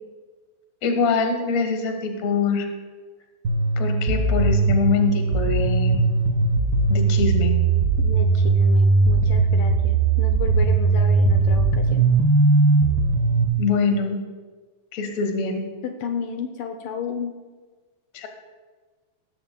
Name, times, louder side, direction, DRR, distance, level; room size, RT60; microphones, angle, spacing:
voice 1, 0.8-2.7 3.8-6.0 6.9-7.6 13.6-14.2 14.9-15.6 18.1-18.3, left 4 dB, 55° left, 5 dB, 2.2 m, -24 dB
sound 1, 3.4-13.4, right 3 dB, 75° right, 0.9 m, -19 dB
voice 2, 8.0-12.1 15.8-17.3, left 6 dB, 75° left, 5 dB, 2.1 m, -33 dB
19.0 x 14.5 x 2.3 m, 1.4 s
omnidirectional pair, 4.2 m